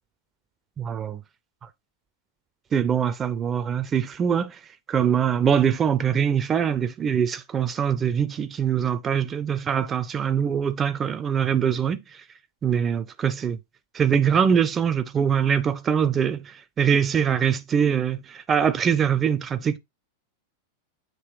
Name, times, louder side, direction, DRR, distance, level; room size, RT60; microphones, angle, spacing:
voice 1, 0.8-1.2 2.7-4.6 4.9-12.0 12.6-13.6 13.9-19.8, right 8 dB, 25° right, 0.6 m, -23 dB
7.7 x 3.0 x 4.7 m
figure-of-eight pair, 90°, 0 cm